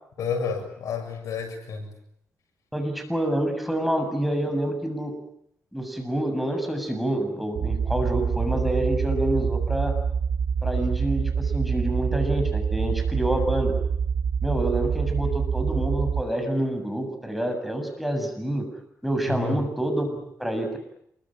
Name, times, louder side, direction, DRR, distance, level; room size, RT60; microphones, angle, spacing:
voice 1, 0.2-1.9 19.3-19.6, left 5 dB, 90° left, 5 dB, 7.2 m, -30 dB
voice 2, 2.7-5.1 5.7-9.9 10.6-13.8 14.4-18.7 19.0-20.8, right 1 dB, ahead, 5 dB, 7.2 m, -27 dB
sound 1, 7.6-16.2, right 6 dB, 75° right, 2.5 m, -26 dB
28.0 x 23.5 x 8.8 m, 0.73 s
cardioid pair, 105°, 5 cm